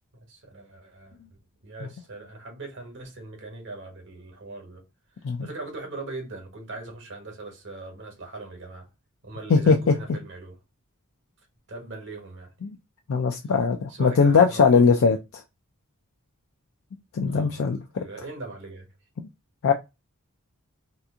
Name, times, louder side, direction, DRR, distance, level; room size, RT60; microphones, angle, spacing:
voice 1, 0.3-4.8 5.4-8.9 9.2-10.6 11.7-12.5 13.9-14.9 17.2-17.7 18.0-18.9, right 2 dB, 55° right, 1.1 m, -40 dB
voice 2, 13.1-15.2 17.1-18.0 19.6-19.7, left 5 dB, 65° left, 0.4 m, -20 dB
2.9 x 2.5 x 3.5 m
head